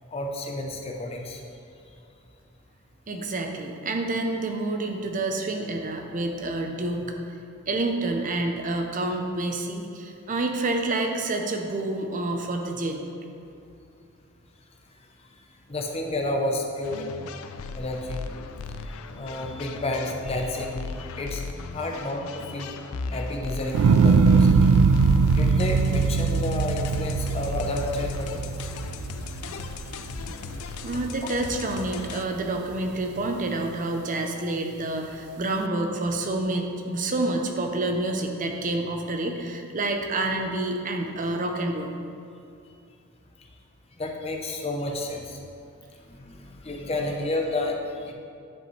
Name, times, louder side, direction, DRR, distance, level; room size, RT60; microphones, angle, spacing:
voice 1, 0.1-1.4 15.7-17.1 17.7-18.2 19.2-21.4 21.7-22.8 23.1-24.6 25.3-28.4 31.2-31.4 44.0-45.4 46.1-48.1, left 1 dB, 30° left, 1 dB, 0.6 m, -30 dB
voice 2, 3.1-7.1 7.7-13.2 30.8-41.9, right 2 dB, 35° right, 3 dB, 0.6 m, -28 dB
sound 1, 16.8-32.2, left 4 dB, 70° left, 0.4 m, -36 dB
sound 2, 23.7-30.1 30.5-31.1, right 5 dB, 80° right, 0.3 m, -21 dB
10.0 x 5.4 x 3.2 m, 2.5 s
head